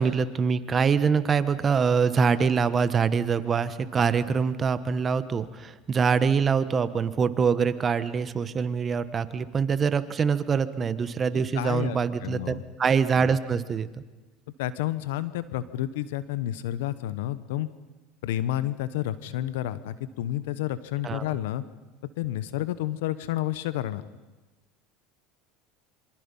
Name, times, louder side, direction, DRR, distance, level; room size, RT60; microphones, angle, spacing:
voice 1, 0.0-14.0 21.0-21.3, right 6 dB, 30° right, 13 dB, 1.3 m, -24 dB
voice 2, 11.5-12.6 14.6-17.7 18.2-21.6 22.2-24.0, left 13 dB, 85° left, 14 dB, 1.2 m, -30 dB
27.0 x 24.5 x 5.7 m, 1.2 s
supercardioid pair, 105°, 0 cm